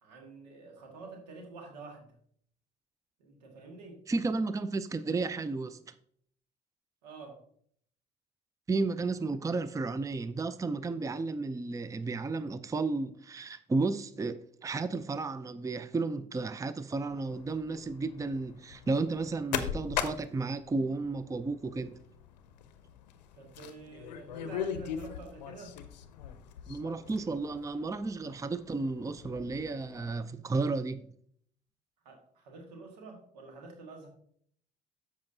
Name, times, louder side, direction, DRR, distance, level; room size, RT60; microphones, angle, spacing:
voice 1, 0.0-2.1 3.2-4.0 7.0-7.4 23.3-25.8 32.1-34.1, right 3 dB, 80° right, 1.8 m, -48 dB
voice 2, 4.1-5.9 8.7-22.0 26.7-31.0, right 3 dB, 15° right, 0.5 m, -33 dB
sound 1, 17.1-30.1, left 9 dB, 85° left, 0.6 m, -41 dB
13.5 x 4.9 x 2.7 m
hypercardioid pair, 50°, 21 cm